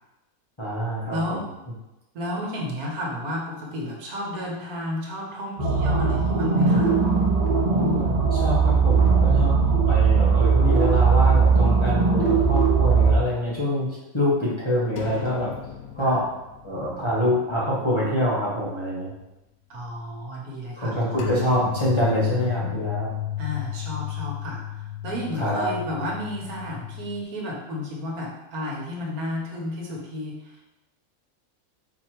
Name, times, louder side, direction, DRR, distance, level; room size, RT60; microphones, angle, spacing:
voice 1, 0.6-1.4 6.4-6.8 7.7-15.5 15.9-16.2 16.6-19.1 20.8-23.1 25.3-25.9, left 1 dB, 25° left, -7 dB, 0.8 m, -25 dB
voice 2, 1.1-1.4 2.1-6.9 16.0-16.2 19.7-20.9 23.4-30.6, left 1 dB, 80° right, -2 dB, 1.5 m, -32 dB
sound 1, 5.6-13.1, right 5 dB, 35° right, 0.8 m, -19 dB
sound 2, 15.0-18.1 18.4-18.6 21.2-27.2, left 12 dB, 80° left, 1.0 m, -34 dB
4.2 x 2.8 x 4.4 m, 0.98 s
omnidirectional pair, 1.5 m